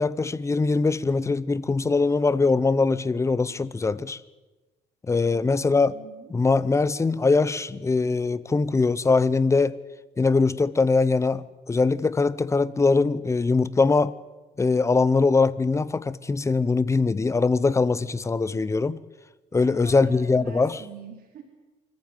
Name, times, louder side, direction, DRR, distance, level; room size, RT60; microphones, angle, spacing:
voice 1, 0.0-4.2 5.1-6.0 6.3-9.8 10.2-14.1 14.6-19.0 19.5-20.8, left 4 dB, 15° left, 0.8 m, -22 dB
voice 2, 5.2-6.3 19.5-21.4, right 8 dB, 60° right, 3.5 m, -45 dB
25.0 x 14.5 x 9.2 m
cardioid pair, 110°, 17 cm